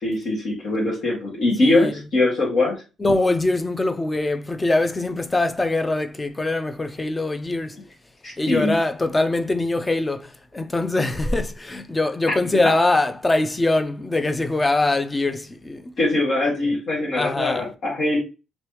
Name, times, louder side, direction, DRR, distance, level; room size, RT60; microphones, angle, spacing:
voice 1, 0.0-2.8 8.2-8.8 12.3-12.4 16.0-18.2, left 2 dB, 60° left, 1.5 m, -22 dB
voice 2, 1.6-1.9 3.0-7.8 8.4-15.9 17.1-17.7, left 2 dB, 20° left, 0.5 m, -23 dB
3.2 x 3.0 x 3.1 m
cardioid pair, 90°, 0 cm